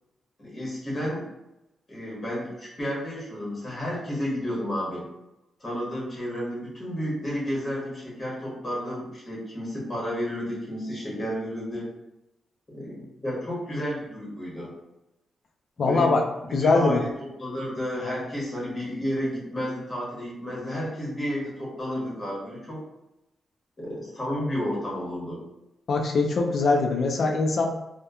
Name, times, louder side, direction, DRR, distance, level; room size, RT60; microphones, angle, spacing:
voice 1, 0.4-1.2 1.9-5.1 5.6-11.9 12.7-14.7 15.8-22.8 23.8-25.4, equal, 20° left, -6 dB, 1.0 m, -31 dB
voice 2, 15.8-16.2 16.5-17.0 25.9-27.7, left 3 dB, 55° left, 3 dB, 0.4 m, -22 dB
2.8 x 2.1 x 2.3 m, 0.91 s
wide cardioid pair, 150°, 0 cm